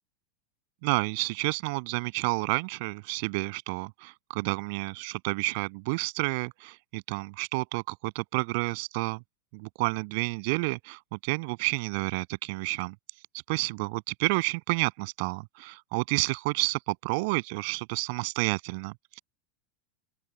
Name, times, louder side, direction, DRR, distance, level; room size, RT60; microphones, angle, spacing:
voice 1, 0.8-9.2 9.5-12.9 13.5-19.2, right 29 dB, 60° right, 7.5 m, -30 dB
open air
hypercardioid pair, 90°, 0 cm